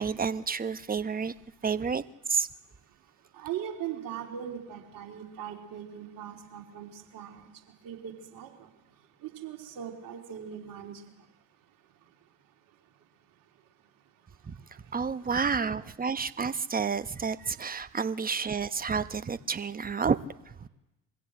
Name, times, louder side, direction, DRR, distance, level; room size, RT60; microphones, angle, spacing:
voice 1, 0.0-1.3 1.6-2.0 2.3-2.5 14.4-14.6 14.9-20.2 20.5-20.7, right 5 dB, 25° right, 1.0 m, -30 dB
voice 2, 3.3-7.5 7.8-8.7 9.2-11.0, right 9 dB, 60° right, 3.7 m, -40 dB
23.0 x 16.0 x 7.8 m
hypercardioid pair, 55°, 38 cm